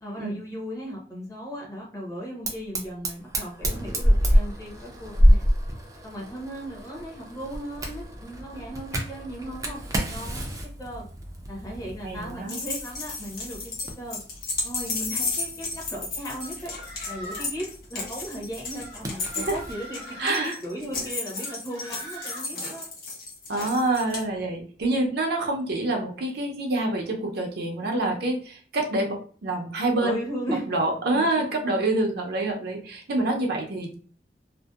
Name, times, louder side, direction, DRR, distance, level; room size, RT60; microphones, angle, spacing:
voice 1, 0.0-5.5 6.0-9.8 10.1-10.5 10.8-11.1 11.5-14.2 14.6-16.7 17.1-22.9 27.8-28.2 30.0-30.6 31.1-31.4, equal, 20° left, -3 dB, 0.8 m, -37 dB
Fire, 2.4-19.8, equal, 20° right, 0.4 m, -28 dB
voice 2, 12.0-12.6 19.3-19.6 20.2-20.6 23.5-30.2 30.7-33.9, right 2 dB, 65° right, 1 dB, 0.6 m, -26 dB
sound 1, 12.5-24.2, left 3 dB, 55° left, 0.8 m, -33 dB
sound 2, 16.3-17.6 18.8-20.4 21.3-22.5, equal, 85° left, 1.2 m, -41 dB
2.6 x 2.1 x 2.3 m, 0.43 s
head